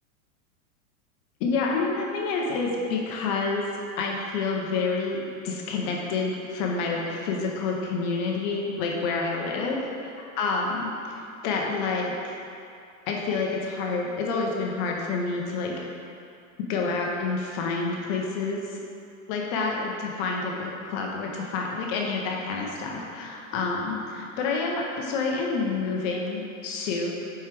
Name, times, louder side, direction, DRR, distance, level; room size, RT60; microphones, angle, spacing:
voice 1, 1.4-3.7 4.0-9.8 10.4-12.3 13.1-15.7 16.7-18.8 19.3-27.1, left 4 dB, 35° left, -1 dB, 0.8 m, -28 dB
7.2 x 4.7 x 3.4 m, 2.5 s
supercardioid pair, 150°, 41 cm